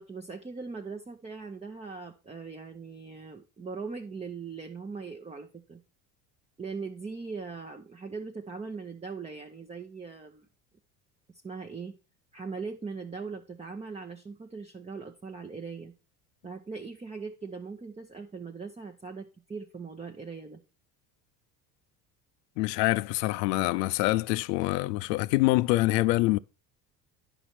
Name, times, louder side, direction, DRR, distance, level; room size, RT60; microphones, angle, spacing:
voice 1, 0.0-5.8 6.6-10.5 11.4-12.0 12.3-15.9 16.4-20.6, right 4 dB, 15° right, 0.8 m, -40 dB
voice 2, 22.6-26.4, left 19 dB, 80° left, 0.6 m, -25 dB
10.0 x 5.5 x 4.3 m
hypercardioid pair, 75°, 49 cm